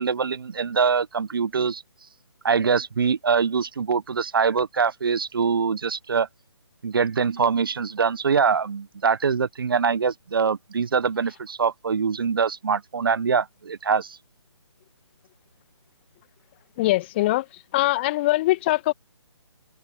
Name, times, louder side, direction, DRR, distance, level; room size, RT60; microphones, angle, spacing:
voice 1, 0.0-1.8 2.4-6.3 6.8-14.2, right 6 dB, 50° right, 1.4 m, -23 dB
voice 2, 16.8-17.5 17.7-18.9, left 17 dB, 20° left, 2.0 m, -22 dB
open air
figure-of-eight pair, 145°, 15 cm